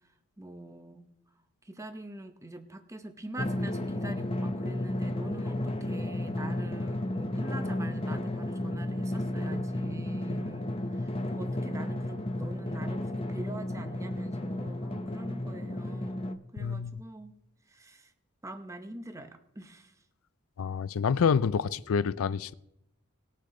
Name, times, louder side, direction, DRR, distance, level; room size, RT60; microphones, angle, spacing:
voice 1, 0.4-1.1 1.6-17.4 17.7-18.1 18.4-20.0, right 2 dB, 15° right, 0.8 m, -44 dB
Drum, 3.4-16.3, left 1 dB, 25° left, 0.6 m, -33 dB
voice 2, 16.6-17.0 20.6-22.5, left 6 dB, 75° left, 0.4 m, -27 dB
19.5 x 6.6 x 3.8 m
head